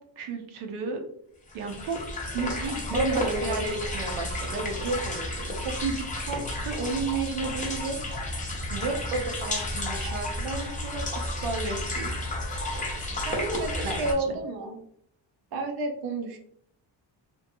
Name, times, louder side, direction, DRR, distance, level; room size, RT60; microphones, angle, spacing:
voice 1, 0.2-1.0 1.5-2.0 2.3-8.4 8.7-12.2 13.8-14.4, right 4 dB, 90° right, 3 dB, 0.7 m, -33 dB
sound 1, 1.5-14.1, left 1 dB, 15° left, 0.4 m, -32 dB
voice 2, 2.9-3.7 13.3-14.8 15.5-16.4, right 2 dB, 50° right, 4 dB, 0.5 m, -30 dB
2.6 x 2.2 x 2.6 m, 0.70 s
cardioid pair, 125°, 47 cm